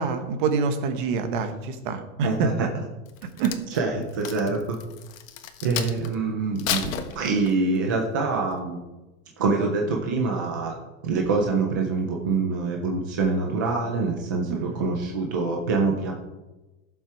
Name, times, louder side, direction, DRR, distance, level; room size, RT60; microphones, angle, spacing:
voice 1, 0.0-2.7 3.2-3.6 14.5-14.9, right 5 dB, 40° right, 8 dB, 1.2 m, -26 dB
voice 2, 2.2-2.7 3.8-4.8 5.6-8.8 9.4-10.8 11.0-16.1, right 4 dB, 15° right, 1 dB, 0.3 m, -25 dB
Crack, 3.1-6.1 6.6-7.8 8.3-8.5, left 10 dB, 70° left, 1.5 m, -32 dB
14.5 x 7.4 x 4.7 m, 1.1 s
supercardioid pair, 175°, 41 cm